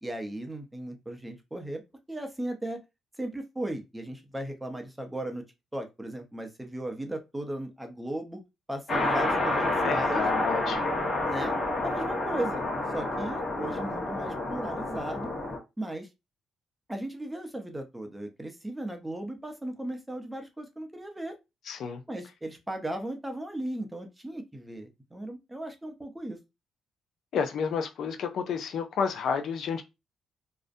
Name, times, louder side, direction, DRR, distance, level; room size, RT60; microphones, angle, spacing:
voice 1, 0.0-1.8 2.1-2.8 3.2-5.4 5.7-8.4 8.7-10.3 11.3-11.5 11.8-12.6 12.9-15.3 15.8-16.1 16.9-21.3 22.1-26.4, right 1 dB, 10° right, 0.6 m, -36 dB
sound 1, 8.9-15.6, left 2 dB, 35° left, 1.0 m, -29 dB
voice 2, 9.8-10.9 21.7-22.0 27.3-29.8, left 6 dB, 70° left, 0.4 m, -30 dB
2.5 x 2.1 x 2.5 m
cardioid pair, 90°, 0 cm